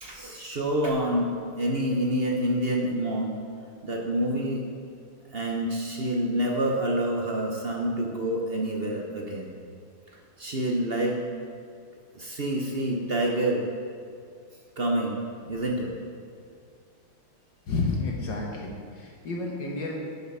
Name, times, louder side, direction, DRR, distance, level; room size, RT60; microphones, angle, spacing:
voice 1, 0.0-3.4 3.8-4.7 5.3-9.5 10.4-11.2 12.1-13.6 14.8-15.2 15.5-15.9, right 1 dB, 50° right, 0 dB, 0.7 m, -27 dB
voice 2, 17.7-20.0, left 3 dB, 65° left, -2 dB, 1.8 m, -30 dB
10.5 x 6.7 x 5.5 m, 2.3 s
omnidirectional pair, 2.2 m